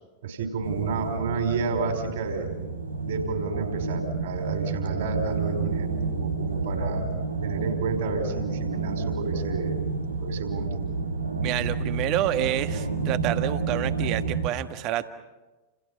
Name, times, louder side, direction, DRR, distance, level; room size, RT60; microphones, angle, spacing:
voice 1, 0.2-2.5 3.0-7.1 7.4-9.8 10.2-10.8, right 4 dB, 60° right, 5 dB, 5.2 m, -30 dB
sound 1, 0.6-14.5, right 4 dB, 85° right, 2.4 m, -30 dB
voice 2, 11.4-15.1, right 13 dB, 40° right, 10 dB, 1.6 m, -28 dB
30.0 x 29.0 x 5.7 m, 1.1 s
figure-of-eight pair, 90°, 0 cm